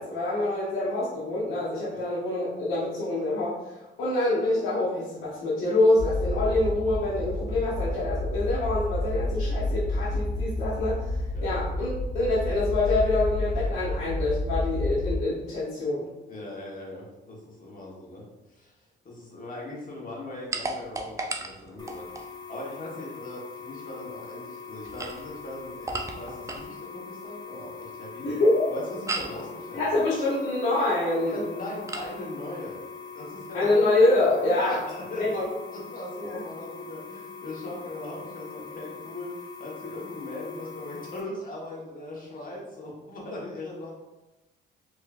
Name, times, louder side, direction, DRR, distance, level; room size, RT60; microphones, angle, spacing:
voice 1, 0.0-11.1 11.4-16.1 28.2-28.7 29.7-31.4 33.5-34.8 35.2-35.4 36.2-36.4, left 2 dB, 90° left, -11 dB, 1.0 m, -26 dB
sound 1, 6.0-15.2, left 1 dB, 85° right, 0.7 m, -30 dB
voice 2, 16.3-18.2 18.5-28.3 28.7-30.0 31.2-32.8 33.1-33.7 34.5-35.4 35.7-43.9, left 1 dB, 45° left, -4 dB, 1.2 m, -39 dB
sound 2, 20.5-22.3 24.8-26.7 29.1-29.4 31.9-32.1, right 2 dB, 15° right, 0.3 m, -34 dB
sound 3, 21.8-41.2, left 5 dB, 20° left, 0.7 m, -42 dB
3.5 x 2.9 x 2.4 m, 1.0 s
cardioid pair, 90°, 20 cm